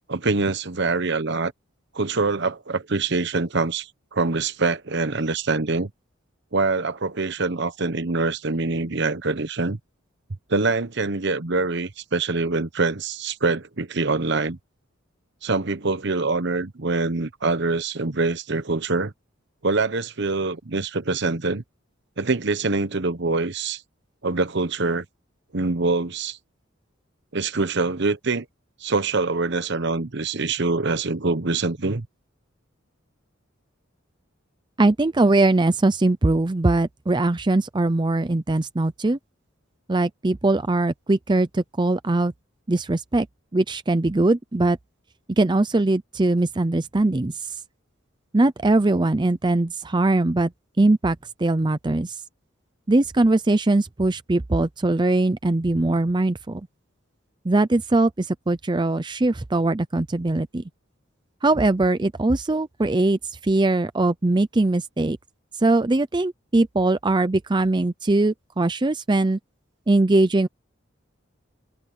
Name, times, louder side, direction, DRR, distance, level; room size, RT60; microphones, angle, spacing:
voice 1, 0.1-1.5 1.9-5.9 6.5-9.8 10.5-14.6 15.4-19.1 19.6-21.6 22.2-23.8 24.2-25.0 25.5-26.4 27.3-28.4 28.8-32.1, right 3 dB, 60° right, 1.2 m, -24 dB
voice 2, 34.8-39.2 39.9-42.3 42.7-43.3 43.5-44.8 45.3-47.6 48.3-50.5 50.8-52.2 52.9-56.6 57.4-60.6 61.4-65.2 65.6-69.4 69.9-70.5, right 2 dB, 25° right, 0.5 m, -21 dB
head